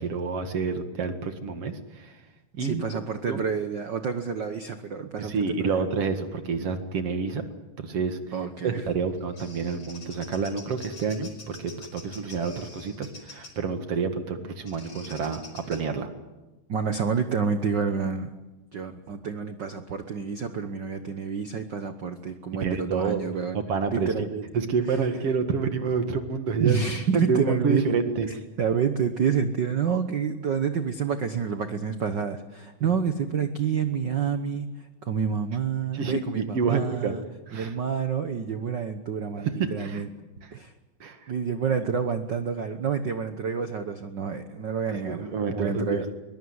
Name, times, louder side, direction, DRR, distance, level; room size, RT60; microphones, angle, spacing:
voice 1, 0.0-2.2 2.6-2.8 3.3-3.4 5.2-7.5 7.8-8.2 8.6-16.1 22.6-23.2 23.5-24.1 24.5-26.8 27.1-28.4 35.9-37.1 37.5-37.7 39.4-40.0 41.0-41.2 45.0-46.0, right 5 dB, 50° right, 7 dB, 2.5 m, -28 dB
voice 2, 2.6-5.8 8.3-8.8 16.7-18.3 18.7-23.6 23.9-24.4 24.9-25.0 26.6-27.9 28.6-37.2 37.5-40.1 40.5-40.7 41.3-46.1, right 6 dB, 85° right, 9 dB, 0.9 m, -28 dB
Bird vocalization bird call bird song, 8.9-13.6 14.7-15.8, left 3 dB, 45° left, 5.7 m, -46 dB
22.5 x 21.5 x 9.7 m, 1.1 s
omnidirectional pair, 3.8 m